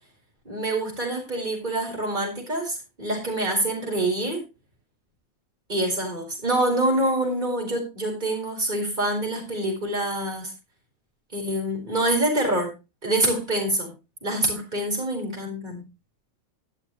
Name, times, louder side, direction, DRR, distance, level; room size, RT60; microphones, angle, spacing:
voice 1, 0.4-4.4 5.7-10.5 11.3-12.7 13.0-13.9 14.2-15.8, right 1 dB, 35° right, 0 dB, 4.9 m, -26 dB
13.0 x 10.5 x 3.1 m, 0.27 s
omnidirectional pair, 1.5 m